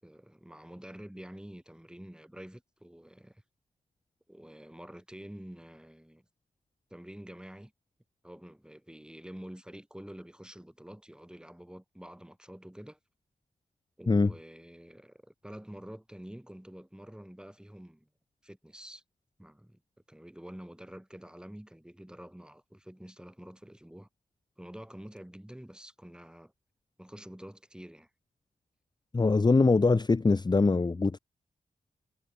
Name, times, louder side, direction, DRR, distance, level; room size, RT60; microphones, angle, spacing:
voice 1, 0.0-3.4 4.3-6.2 6.9-7.7 8.2-13.0 14.0-18.1 18.4-19.0 19.4-19.8 20.1-24.1 24.6-26.5 27.0-28.1, equal, 5° right, 7.6 m, -48 dB
voice 2, 29.1-31.2, left 3 dB, 30° left, 0.9 m, -23 dB
cardioid pair, 70°, 15 cm